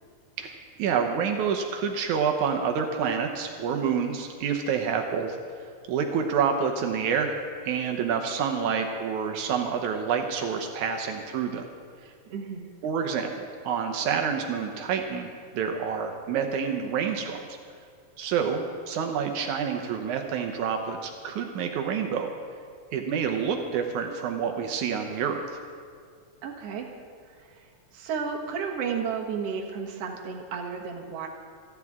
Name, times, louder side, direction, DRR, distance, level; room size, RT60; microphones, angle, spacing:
voice 1, 0.4-5.4 5.9-7.4 7.6-11.6 12.8-17.5 18.2-22.3 22.9-25.4, right 6 dB, 85° right, 4 dB, 2.3 m, -28 dB
voice 2, 12.3-12.7 26.4-26.9 27.3-31.3, right 6 dB, 60° right, 1 dB, 2.3 m, -33 dB
28.0 x 11.0 x 3.6 m, 2.1 s
omnidirectional pair, 3.3 m